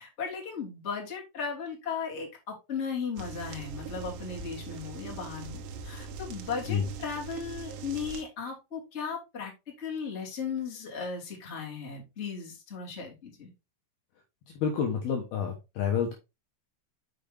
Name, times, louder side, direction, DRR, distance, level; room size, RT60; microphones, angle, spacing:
voice 1, 0.0-9.5 9.8-13.5, left 6 dB, 20° left, -3 dB, 1.8 m, -36 dB
sound 1, 3.2-8.2, right 5 dB, 90° right, 3.9 m, -41 dB
voice 2, 14.6-16.1, left 7 dB, 80° left, 2 dB, 2.3 m, -29 dB
6.7 x 6.7 x 3.4 m, 0.25 s
omnidirectional pair, 5.9 m